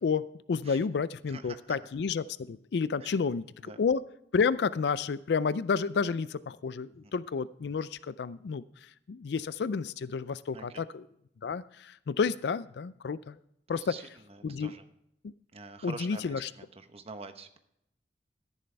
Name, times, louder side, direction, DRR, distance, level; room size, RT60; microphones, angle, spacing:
voice 1, 0.0-4.0 4.3-11.0 11.4-13.4 13.7-13.8 14.4-14.7 15.2-15.3 15.8-16.5, left 5 dB, 70° left, 17 dB, 0.4 m, -31 dB
voice 2, 1.3-1.8 3.0-3.2 3.6-3.8 7.0-7.1 10.5-10.9 13.7-14.8 15.5-17.6, right 3 dB, 35° right, 8 dB, 1.0 m, -46 dB
13.0 x 11.0 x 3.3 m, 0.78 s
head